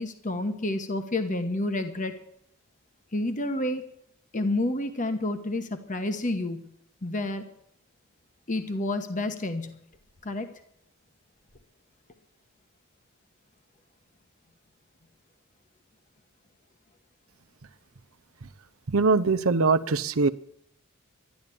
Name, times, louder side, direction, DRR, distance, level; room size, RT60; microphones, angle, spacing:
voice 1, 0.0-2.1 3.1-3.8 4.3-6.7 7.0-7.4 8.5-9.8 10.2-10.5, left 2 dB, 40° left, 7 dB, 1.2 m, -29 dB
voice 2, 18.9-20.3, right 4 dB, 80° right, 10 dB, 0.7 m, -22 dB
12.5 x 11.0 x 8.6 m, 0.71 s
head